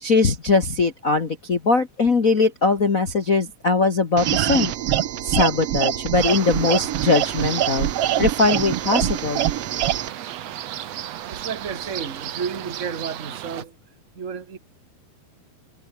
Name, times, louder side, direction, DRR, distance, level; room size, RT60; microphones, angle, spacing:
voice 1, 0.0-4.7 5.2-7.9 8.2-9.5, left 3 dB, 80° left, 0.7 m, -20 dB
sound 1, 4.2-10.1, right 12 dB, 85° right, 1.3 m, -24 dB
sound 2, 6.1-13.6, right 11 dB, 65° right, 1.7 m, -34 dB
voice 2, 11.3-13.7 14.1-14.6, right 6 dB, 25° right, 1.9 m, -32 dB
omnidirectional pair, 4.4 m